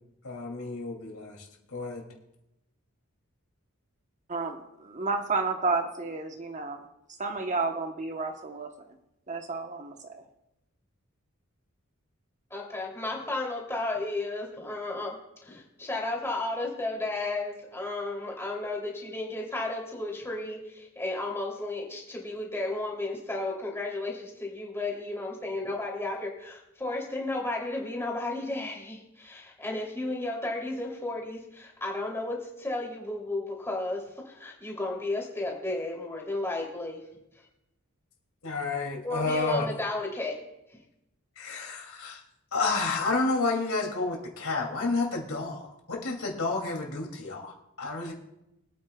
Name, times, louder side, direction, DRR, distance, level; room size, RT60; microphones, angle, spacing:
voice 1, 0.2-2.0 38.4-39.7 41.4-42.2 42.5-48.1, left 3 dB, 75° left, 1 dB, 2.5 m, -30 dB
voice 2, 4.3-6.8 7.2-8.7 9.3-10.2, right 4 dB, 35° right, 5 dB, 0.9 m, -31 dB
voice 3, 12.5-15.2 15.4-37.0 39.0-40.4, left 2 dB, 10° left, -2 dB, 2.8 m, -33 dB
24.5 x 9.2 x 2.3 m, 0.87 s
head